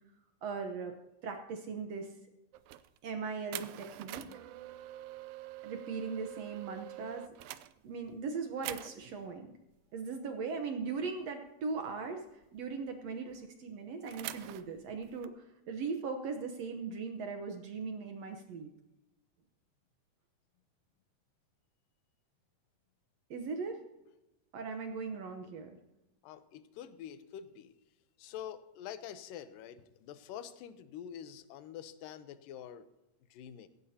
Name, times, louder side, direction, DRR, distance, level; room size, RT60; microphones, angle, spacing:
voice 1, 0.4-1.0 1.2-2.1 3.0-4.3 5.6-7.2 7.8-9.5 9.9-18.7 23.3-23.8 24.5-25.8, right 4 dB, 65° right, 5 dB, 1.8 m, -39 dB
sound 1, 2.5-3.0 3.5-8.2 8.6-9.2 11.2-11.5 11.8-11.9 12.3-13.4 14.1-15.3, right 15 dB, 85° right, 2.3 m, -45 dB
voice 2, 26.2-27.7 28.2-32.9 33.3-33.7, left 9 dB, 85° left, 12 dB, 2.5 m, -46 dB
16.5 x 16.5 x 2.8 m, 0.96 s
omnidirectional pair, 3.8 m